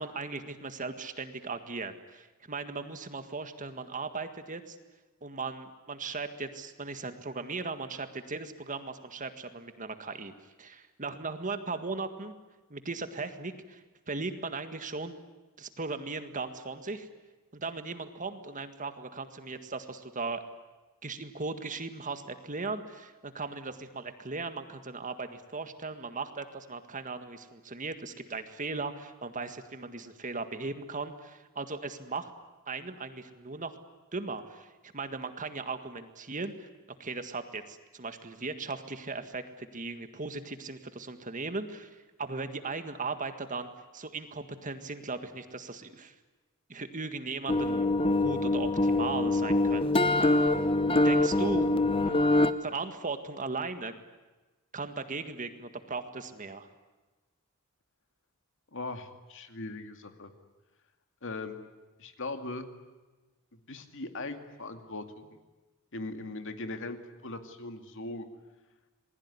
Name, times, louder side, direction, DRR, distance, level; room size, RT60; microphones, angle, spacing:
voice 1, 0.0-4.8 5.2-10.3 10.6-12.3 12.7-15.1 15.6-17.1 17.5-20.4 21.0-32.3 32.7-33.7 34.1-36.7 37.0-46.1 46.7-50.6 51.0-51.8 52.0-52.3 52.6-53.9 54.7-56.7, right 3 dB, 35° right, 9 dB, 1.8 m, -38 dB
sound 1, 47.5-52.5, left 2 dB, 25° left, 1.1 m, -24 dB
voice 2, 58.7-60.3 61.2-61.7 62.0-62.7 63.5-65.4 65.9-67.0 67.2-68.2, left 2 dB, 60° left, 7 dB, 2.4 m, -39 dB
27.5 x 20.5 x 9.7 m, 1.2 s
head